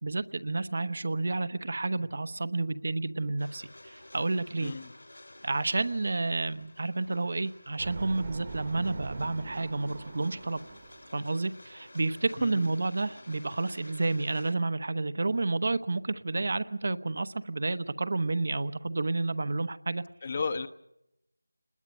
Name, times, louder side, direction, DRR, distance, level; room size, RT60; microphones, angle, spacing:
voice 1, 0.0-4.7 5.4-10.6 11.1-20.0, right 3 dB, 50° right, 13 dB, 1.0 m, -30 dB
sound 1, 3.4-14.5, left 1 dB, 65° left, 3.3 m, -52 dB
voice 2, 4.6-4.9 12.4-12.6 20.2-20.7, left 4 dB, 30° left, 12 dB, 1.1 m, -33 dB
sound 2, 7.8-11.2, right 3 dB, 30° right, 1.3 m, -42 dB
27.5 x 20.5 x 5.4 m, 0.83 s
figure-of-eight pair, 165°, 0 cm